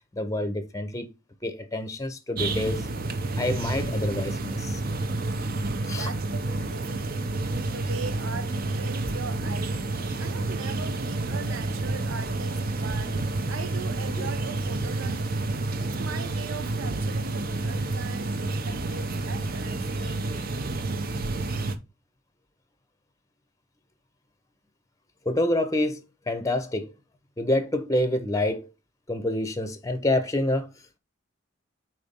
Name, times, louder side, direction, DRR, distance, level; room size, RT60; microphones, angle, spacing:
voice 1, 0.1-1.1 1.4-2.9 3.4-4.8 5.9-6.1 14.2-14.3 25.2-26.9 27.4-28.7 29.1-30.7, left 1 dB, 15° left, 0.7 m, -27 dB
sound 1, 2.4-21.8, right 2 dB, 50° right, 0.7 m, -29 dB
voice 2, 5.9-7.3 7.7-9.9 10.2-13.2 13.5-15.4 15.7-20.8, right 5 dB, 90° right, 0.6 m, -40 dB
4.5 x 4.1 x 5.2 m
head